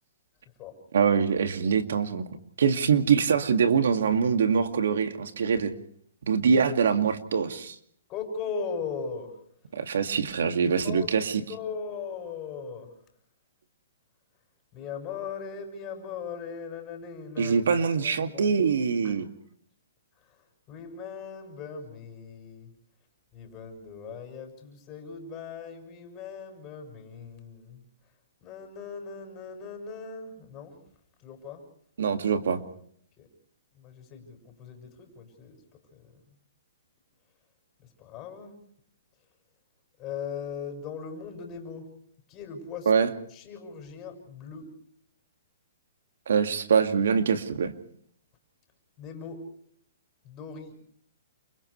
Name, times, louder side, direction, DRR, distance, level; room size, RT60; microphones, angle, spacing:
voice 1, 0.9-2.3 2.6-5.7 6.3-7.8 9.7-11.4 17.4-19.3 32.0-32.6 42.9-43.1 46.3-47.7, right 6 dB, 75° right, 2.2 m, -24 dB
voice 2, 8.1-9.3 10.8-11.1 11.5-12.9 14.7-17.6 18.0-18.5 19.0-19.3 20.7-22.7 23.3-27.8 28.4-30.7 31.2-31.6 33.2-33.3 33.8-35.6 35.9-36.1 38.0-38.5 40.0-41.8 42.3-43.0 43.3-44.7 49.0-49.4 50.2-50.7, left 6 dB, 25° left, 6.7 m, -39 dB
29.5 x 27.5 x 3.3 m
hypercardioid pair, 150°, 0 cm